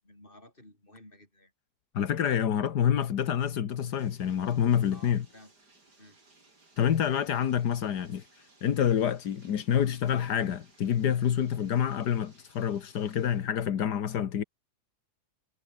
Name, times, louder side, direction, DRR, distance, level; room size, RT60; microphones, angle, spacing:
voice 1, 0.0-1.5 4.9-5.5 6.0-6.2, left 1 dB, 30° left, 7.1 m, -54 dB
voice 2, 1.9-5.3 6.8-8.2 8.6-14.4, left 9 dB, 85° left, 1.8 m, -27 dB
Bathtub (filling or washing), 3.7-13.5, right 3 dB, 90° right, 6.0 m, -61 dB
omnidirectional pair, 1.7 m